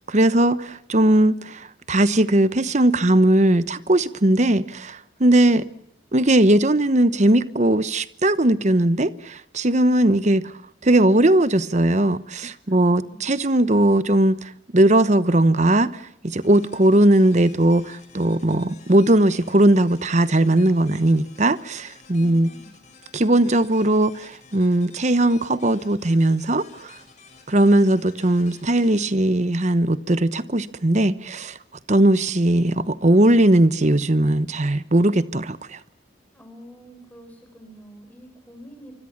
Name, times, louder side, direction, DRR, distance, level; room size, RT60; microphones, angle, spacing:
voice 1, 0.1-5.6 6.1-10.5 10.8-22.5 23.1-26.9 27.5-31.6 31.9-35.8, right 1 dB, 40° right, 1.0 m, -19 dB
voice 2, 12.7-13.3 22.1-22.7 36.3-38.9, equal, 10° left, 6.4 m, -46 dB
sound 1, 16.4-30.1, left 5 dB, 40° left, 7.1 m, -51 dB
26.0 x 24.5 x 7.3 m
head